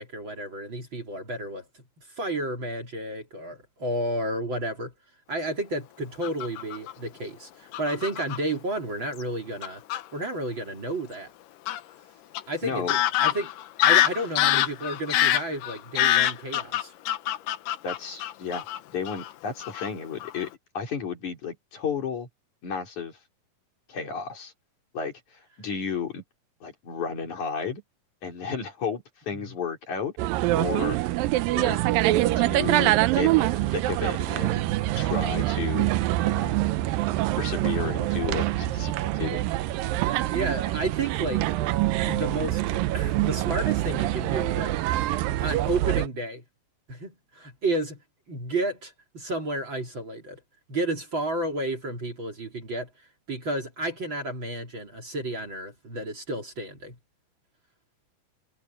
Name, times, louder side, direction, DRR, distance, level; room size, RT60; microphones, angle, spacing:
voice 1, 0.0-1.7 2.2-4.9 5.3-9.8 10.1-11.3 12.5-13.5 13.8-16.9 29.3-29.5 39.7-41.6 42.0-44.8 45.4-46.4 46.9-48.0 48.3-50.4 50.7-57.0, right 1 dB, 35° right, 3.6 m, -32 dB
Fowl / Bird vocalization bird call bird song, 6.2-6.9 7.7-8.4 9.2-9.3 9.6-10.0 11.7-11.8 12.3-12.4 12.9-18.8 19.1-19.3 19.6-19.9 20.2-20.5, left 13 dB, 75° left, 2.5 m, -25 dB
voice 2, 12.6-12.9 17.8-18.6 18.9-20.5 20.7-22.3 22.6-23.2 23.9-24.5 24.9-26.2 26.6-27.8 28.2-30.1 30.6-31.0 31.5-31.8 32.4-34.6 34.9-35.9 36.2-36.6 37.4-39.4, left 6 dB, 60° left, 5.2 m, -33 dB
sound 1, 30.2-46.1, right 16 dB, 85° right, 2.5 m, -25 dB
omnidirectional pair, 4.0 m